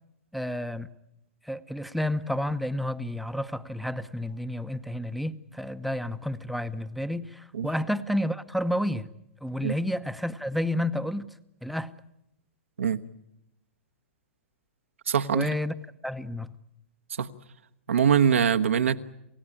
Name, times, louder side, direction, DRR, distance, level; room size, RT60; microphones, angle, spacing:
voice 1, 0.3-0.9 1.4-9.1 9.4-11.3 11.6-11.9 15.3-15.7 16.0-16.5, left 1 dB, ahead, 0.9 m, -30 dB
voice 2, 15.1-15.5 17.2-17.3 17.9-19.0, right 7 dB, 90° right, 1.2 m, -23 dB
28.0 x 16.5 x 9.9 m
hypercardioid pair, 125°, 7 cm